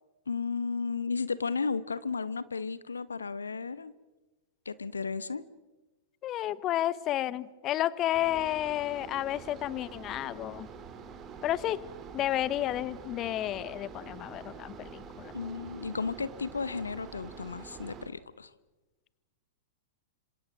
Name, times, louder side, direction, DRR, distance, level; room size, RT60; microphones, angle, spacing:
voice 1, 0.3-3.9 4.6-5.4 15.3-18.5, left 5 dB, 75° left, 17 dB, 0.9 m, -34 dB
voice 2, 6.2-10.7 11.4-11.8 12.1-15.3, left 13 dB, 30° left, 19 dB, 1.0 m, -31 dB
sound 1, 8.1-18.1, right 6 dB, 25° right, 3.0 m, -46 dB
27.0 x 26.5 x 6.2 m, 1.2 s
figure-of-eight pair, 105°, 0 cm